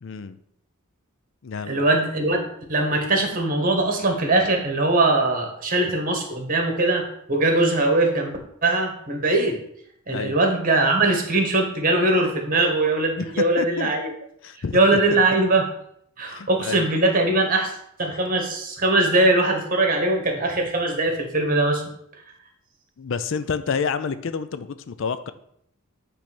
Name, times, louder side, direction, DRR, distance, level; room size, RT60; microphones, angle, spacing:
voice 1, 0.0-0.4 1.4-1.8 10.1-10.4 13.2-13.9 14.4-15.2 16.3-16.9 23.0-25.3, left 5 dB, 60° left, 12 dB, 0.4 m, -29 dB
voice 2, 1.7-9.6 10.1-14.1 14.7-15.6 16.2-21.8, right 2 dB, 40° right, 3 dB, 1.5 m, -21 dB
8.7 x 3.4 x 6.0 m, 0.71 s
head